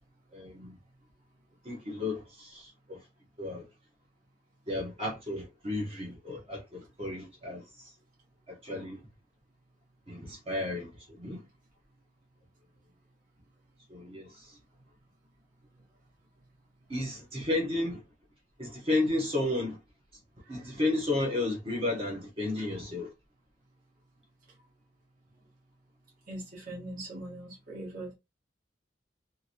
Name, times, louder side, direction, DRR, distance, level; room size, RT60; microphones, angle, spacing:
voice 1, 0.3-0.8 1.6-3.0 3.4-3.6 4.7-7.9 8.5-9.0 10.1-11.4 13.9-14.6 16.9-18.0 18.6-19.8 20.5-23.1, left 2 dB, 30° right, 0.8 m, -33 dB
voice 2, 26.3-28.1, right 1 dB, 50° right, 1.2 m, -41 dB
2.8 x 2.5 x 2.7 m
head